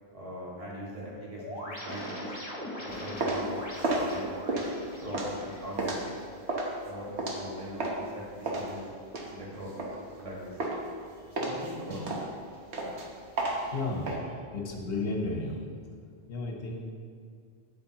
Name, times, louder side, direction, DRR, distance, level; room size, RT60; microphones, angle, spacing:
voice 1, 0.1-2.2 2.8-3.5 3.8-4.3 5.0-6.0 6.8-8.8 9.3-9.7 10.2-10.5 11.3-12.0, equal, 30° right, -6 dB, 1.8 m, -41 dB
sound 1, 1.4-6.4, left 1 dB, 25° left, 2.0 m, -41 dB
sound 2, 2.9-8.1 8.5-10.3 10.6-11.0 11.4-14.2, right 2 dB, 90° right, 1.3 m, -32 dB
voice 2, 13.7-14.2 14.5-15.6 16.3-16.8, left 2 dB, 65° left, 0 dB, 1.3 m, -33 dB
8.5 x 8.5 x 2.9 m, 2.2 s
omnidirectional pair, 1.1 m